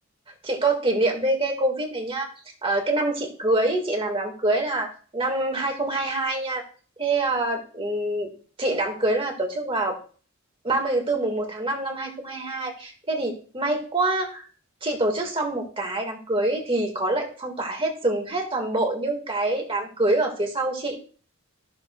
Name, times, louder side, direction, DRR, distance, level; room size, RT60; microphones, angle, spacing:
voice 1, 0.4-2.3 2.6-6.6 7.0-8.3 8.6-10.0 10.6-14.4 14.8-21.0, right 2 dB, 25° right, 3 dB, 1.7 m, -25 dB
14.5 x 6.5 x 2.2 m, 0.41 s
head